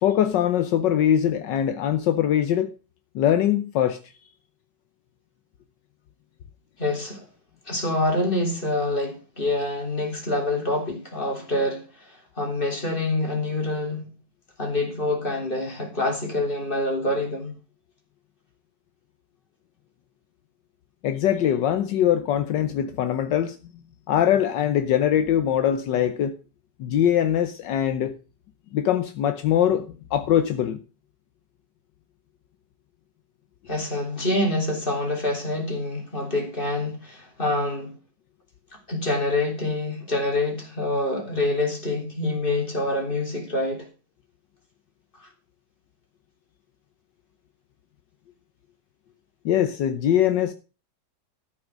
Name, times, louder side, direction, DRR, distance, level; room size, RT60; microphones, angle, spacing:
voice 1, 0.0-2.7 3.1-4.0 21.0-23.6 24.1-26.3 26.8-28.1 28.7-30.8 49.4-50.5, left 10 dB, 75° left, 1.5 m, -22 dB
voice 2, 6.8-7.3 7.7-14.1 14.6-17.5 33.7-37.9 38.9-43.9 45.1-45.3, left 2 dB, 30° left, 3.3 m, -26 dB
13.0 x 6.3 x 6.2 m
omnidirectional pair, 1.9 m